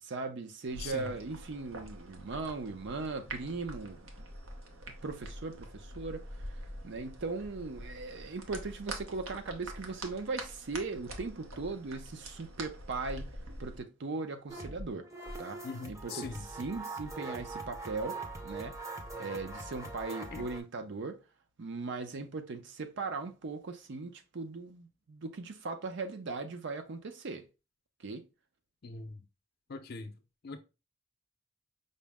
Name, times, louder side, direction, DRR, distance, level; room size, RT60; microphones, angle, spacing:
voice 1, 0.0-4.3 4.9-6.2 6.8-13.3 13.6-15.1 15.4-15.6 15.9-16.3 16.6-18.8 19.2-21.2 21.6-27.4 28.0-28.3, right 3 dB, 65° right, 0.6 m, -39 dB
sound 1, 0.6-13.8, right 1 dB, 90° right, 0.8 m, -45 dB
voice 2, 0.7-1.1 15.6-16.4 20.3-20.4 28.8-29.2 29.7-30.1 30.4-30.6, left 4 dB, 55° left, 0.5 m, -41 dB
sound 2, 14.5-20.6, right 2 dB, 15° right, 0.6 m, -42 dB
5.3 x 2.0 x 3.4 m
head